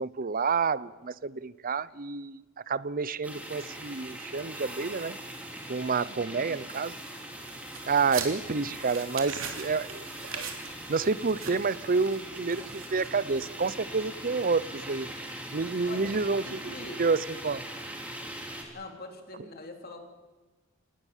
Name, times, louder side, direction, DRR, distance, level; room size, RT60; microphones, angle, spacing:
voice 1, 0.0-2.4 2.7-5.2 5.7-6.9 7.9-10.5 10.9-15.1 15.5-16.6 17.0-17.6, right 4 dB, 45° right, 19 dB, 0.7 m, -29 dB
sound 1, 3.2-18.6, right 1 dB, 5° right, 3.7 m, -41 dB
voice 2, 6.1-6.9 15.8-16.1 16.4-17.0 18.7-20.0, left 2 dB, 45° left, 4 dB, 3.4 m, -44 dB
sound 2, 7.4-13.6, right 6 dB, 70° right, 3.4 m, -41 dB
27.5 x 19.5 x 7.3 m, 1.2 s
head